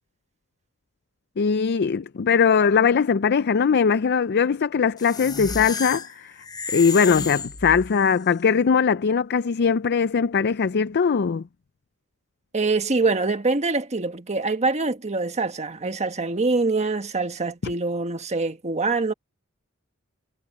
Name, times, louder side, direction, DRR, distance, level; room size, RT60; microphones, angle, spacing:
voice 1, 1.4-6.3 6.7-11.4, left 6 dB, 50° left, 0.4 m, -20 dB
sound 1, 5.0-8.2, left 4 dB, 20° left, 0.9 m, -32 dB
voice 2, 12.5-19.1, right 3 dB, 30° right, 1.4 m, -24 dB
head